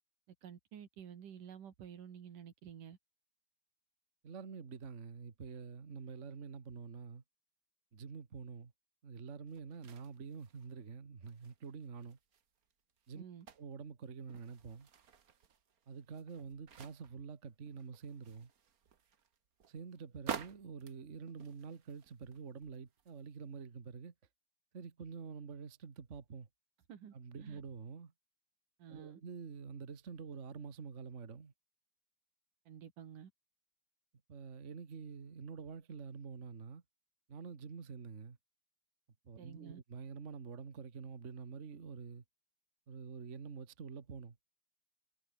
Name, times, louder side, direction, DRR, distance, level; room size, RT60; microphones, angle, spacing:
voice 1, 0.4-3.0 13.1-13.5 26.9-27.6 28.8-29.2 32.7-33.3 39.4-39.8, right 8 dB, 85° right, 4.0 m, -51 dB
voice 2, 4.2-7.2 7.9-8.7 9.0-12.2 13.1-13.2 13.6-14.9 15.9-18.5 19.7-24.1 24.7-26.5 27.1-28.1 28.9-31.5 34.3-36.8 37.3-38.4 39.2-42.2 42.9-44.4, right 5 dB, 30° right, 1.6 m, -47 dB
sound 1, 9.5-10.8 11.2-13.8 14.2-17.3 17.7-23.3 23.8-23.9, right 7 dB, 50° right, 1.1 m, -50 dB
omnidirectional pair, 3.6 m